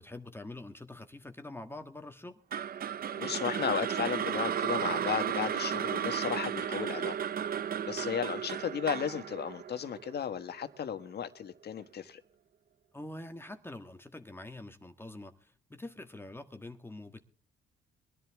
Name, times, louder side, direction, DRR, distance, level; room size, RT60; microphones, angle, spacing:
voice 1, 0.0-2.4 12.9-17.2, left 2 dB, 10° left, 1.6 m, -45 dB
sound 1, 2.5-10.7, right 9 dB, 50° right, 0.7 m, -34 dB
voice 2, 3.2-7.2 7.9-12.2, left 8 dB, 55° left, 1.6 m, -34 dB
22.0 x 11.0 x 3.6 m
cardioid pair, 90°, 20 cm